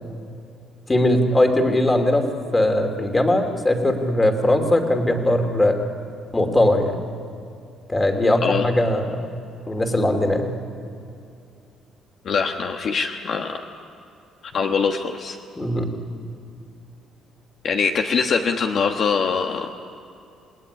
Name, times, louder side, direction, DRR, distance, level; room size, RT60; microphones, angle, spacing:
voice 1, 0.9-2.2 2.5-5.8 6.3-7.1 7.9-9.3 9.7-10.6 15.6-15.9, left 1 dB, 15° left, 5 dB, 2.6 m, -20 dB
voice 2, 12.2-13.6 14.5-15.4 17.6-19.7, left 5 dB, 45° left, 3 dB, 1.3 m, -23 dB
28.0 x 20.0 x 9.9 m, 2.6 s
cardioid pair, 150°, 0 cm